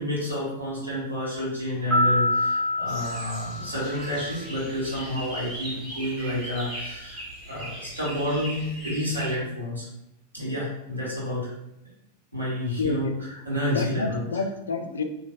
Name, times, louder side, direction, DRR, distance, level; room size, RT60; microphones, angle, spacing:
voice 1, 0.0-9.9 10.3-11.5 12.3-14.2, left 1 dB, 90° right, -7 dB, 1.4 m, -30 dB
sound 1, 1.9-4.4, left 1 dB, 10° left, 0.8 m, -26 dB
sound 2, 2.9-9.3, right 1 dB, 35° right, 1.5 m, -39 dB
voice 2, 12.8-13.1 13.7-15.0, left 4 dB, 70° left, 6 dB, 0.3 m, -29 dB
3.1 x 2.6 x 2.4 m, 0.84 s
figure-of-eight pair, 90°, 0 cm